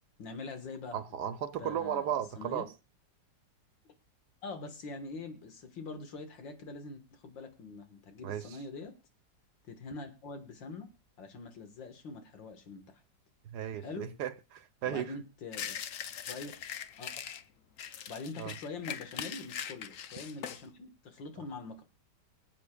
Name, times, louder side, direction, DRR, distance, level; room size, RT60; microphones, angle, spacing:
voice 1, 0.2-1.0 1.6-2.7 4.4-8.9 9.7-10.9 11.2-13.0 13.8-14.1 14.9-15.8 16.2-16.6 17.0-17.1 18.1-21.8, left 3 dB, 90° left, 2.4 m, -44 dB
voice 2, 0.9-2.7 8.2-8.6 13.4-15.1 18.4-18.5 21.4-21.5, right 10 dB, 70° right, 1.3 m, -35 dB
sound 1, 15.5-17.4 17.8-20.6, left 8 dB, 60° left, 0.9 m, -41 dB
25.0 x 8.4 x 2.4 m
omnidirectional pair, 2.0 m